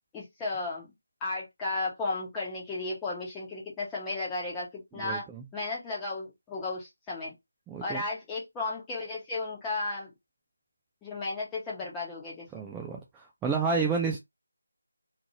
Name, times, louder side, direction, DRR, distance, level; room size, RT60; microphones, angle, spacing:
voice 1, 0.1-0.9 1.2-5.3 5.5-7.3 7.8-10.1 11.0-12.7, left 3 dB, 10° left, 1.1 m, -34 dB
voice 2, 4.9-5.4 7.7-8.0 12.5-14.2, right 5 dB, 5° right, 0.4 m, -30 dB
2.8 x 2.5 x 2.8 m
figure-of-eight pair, 165°, 0 cm